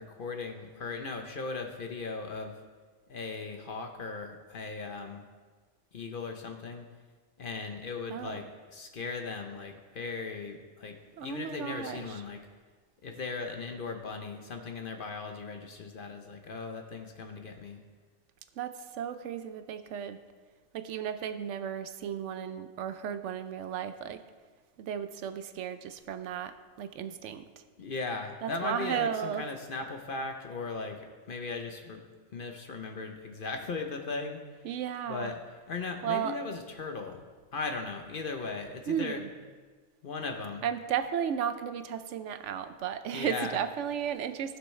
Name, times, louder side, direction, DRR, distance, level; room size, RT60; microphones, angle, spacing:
voice 1, 0.0-2.6 3.1-5.2 5.9-6.9 7.4-12.4 13.0-17.8 27.8-32.0 32.3-34.6 35.1-35.4 35.7-37.3 37.5-39.2 40.0-40.6 43.1-43.6, left 4 dB, 50° left, 4 dB, 0.8 m, -38 dB
voice 2, 11.2-12.2 18.6-20.2 20.7-24.2 24.8-27.4 28.4-29.4 34.6-35.3 36.0-36.4 38.9-39.3 40.6-44.6, right 9 dB, 75° right, 10 dB, 0.9 m, -34 dB
15.0 x 6.2 x 3.2 m, 1.5 s
omnidirectional pair, 1.3 m